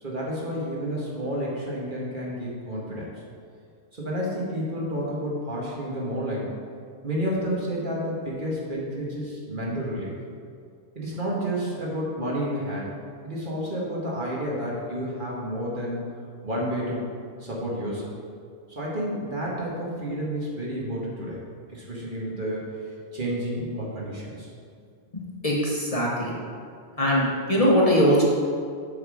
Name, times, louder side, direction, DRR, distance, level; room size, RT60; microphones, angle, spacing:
voice 1, 0.0-3.1 3.9-6.6 7.0-10.1 11.0-12.9 13.2-16.1 16.4-17.0 17.4-18.1 18.7-21.4 21.7-22.7 23.1-24.5 26.9-27.0, equal, 50° right, -5 dB, 1.8 m, -30 dB
voice 2, 25.1-26.3 27.0-28.2, equal, 35° left, -3 dB, 1.1 m, -21 dB
7.3 x 5.8 x 4.9 m, 2.2 s
omnidirectional pair, 1.1 m